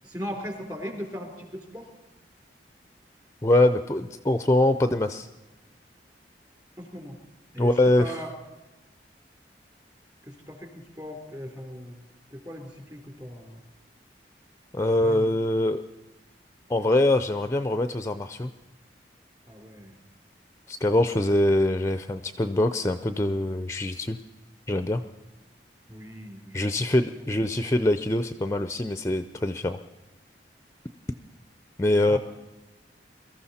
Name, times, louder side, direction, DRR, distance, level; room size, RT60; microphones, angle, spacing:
voice 1, 0.0-1.9 6.8-7.1 7.5-7.7 8.0-8.3 10.2-12.0 12.3-13.6 15.0-15.3 19.5-20.0 25.9-26.8 32.1-32.2, equal, 20° right, 3 dB, 3.3 m, -38 dB
voice 2, 3.4-5.3 7.6-8.2 14.7-15.8 16.7-18.5 20.7-24.2 24.7-25.0 26.5-29.8 31.8-32.2, left 1 dB, 15° left, 10 dB, 0.5 m, -23 dB
23.0 x 14.0 x 4.2 m, 1.0 s
head